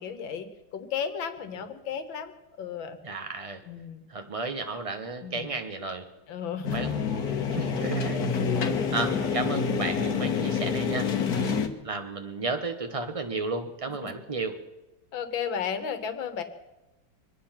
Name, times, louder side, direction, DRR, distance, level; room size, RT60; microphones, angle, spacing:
voice 1, 0.0-2.3 2.6-3.0 3.7-4.0 5.2-5.5 6.3-6.8 14.0-14.1 15.1-16.4, left 7 dB, 85° left, 9 dB, 1.9 m, -34 dB
voice 2, 3.0-3.6 4.1-6.0 6.7-8.2 8.5-14.5, right 3 dB, 20° right, 6 dB, 1.1 m, -33 dB
sound 1, 6.6-11.7, left 6 dB, 55° left, 1.6 m, -27 dB
24.5 x 9.6 x 5.9 m, 1.0 s
omnidirectional pair, 2.1 m